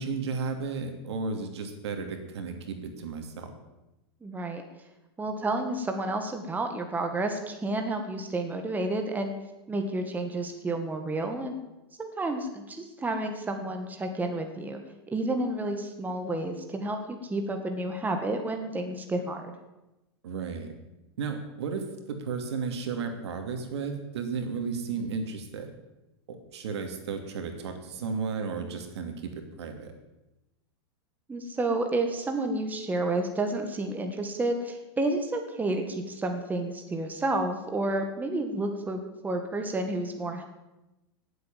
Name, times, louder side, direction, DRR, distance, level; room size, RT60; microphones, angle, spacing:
voice 1, 0.0-3.5 20.2-20.7 21.2-25.7 26.3-29.9, right 5 dB, 80° right, 6 dB, 2.8 m, -34 dB
voice 2, 4.2-4.6 5.2-9.3 9.7-11.5 12.0-14.8 15.1-19.5 31.3-40.4, right 2 dB, 10° right, 5 dB, 1.7 m, -30 dB
18.0 x 8.1 x 7.6 m, 0.99 s
hypercardioid pair, 130°, 14 cm